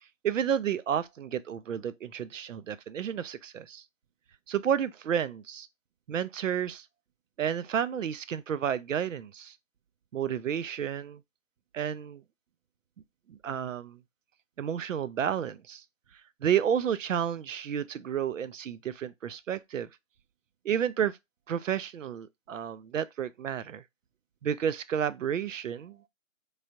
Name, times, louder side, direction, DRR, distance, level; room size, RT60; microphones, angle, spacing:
voice 1, 0.2-3.8 4.5-5.7 6.1-6.9 7.4-9.6 10.1-11.2 11.7-12.2 13.3-14.0 14.6-15.8 16.4-19.9 20.6-21.2 21.5-23.8 24.4-26.0, right 8 dB, 80° right, 0.5 m, -31 dB
3.2 x 2.3 x 2.6 m
figure-of-eight pair, 160°, 38 cm